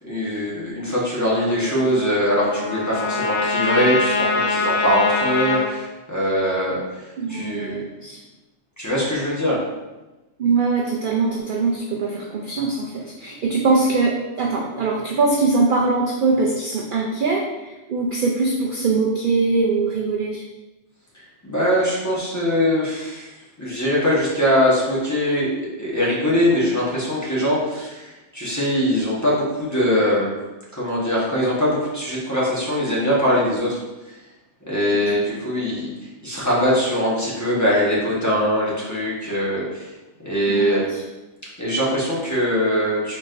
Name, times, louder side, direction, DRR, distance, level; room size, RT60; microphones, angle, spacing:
voice 1, 0.0-7.0 7.3-7.8 8.8-9.6 21.1-30.3 30.7-33.8 34.7-35.9 36.2-39.9 40.2-40.9 41.6-43.2, equal, 15° left, -7 dB, 1.1 m, -22 dB
Trumpet, 1.3-5.7, left 3 dB, 80° left, 1.1 m, -24 dB
voice 2, 7.2-8.2 10.4-20.4 35.1-35.4 40.5-41.0, right 3 dB, 60° right, -2 dB, 0.5 m, -22 dB
4.6 x 4.5 x 2.5 m, 1.1 s
omnidirectional pair, 1.4 m